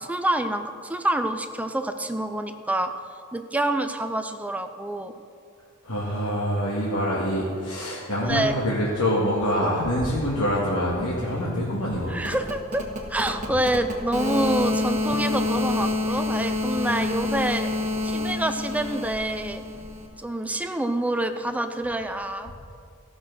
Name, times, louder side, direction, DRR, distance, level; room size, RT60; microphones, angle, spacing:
voice 1, 0.0-2.9 3.3-5.1 8.2-8.6 12.1-12.8 13.1-17.7 18.0-19.6 20.2-22.5, right 1 dB, 5° right, 7 dB, 0.5 m, -27 dB
voice 2, 5.8-12.2, equal, 85° left, -7 dB, 2.0 m, -25 dB
sound 1, 12.2-20.1, left 2 dB, 35° right, 1.5 m, -28 dB
15.0 x 6.2 x 6.3 m, 2.4 s
head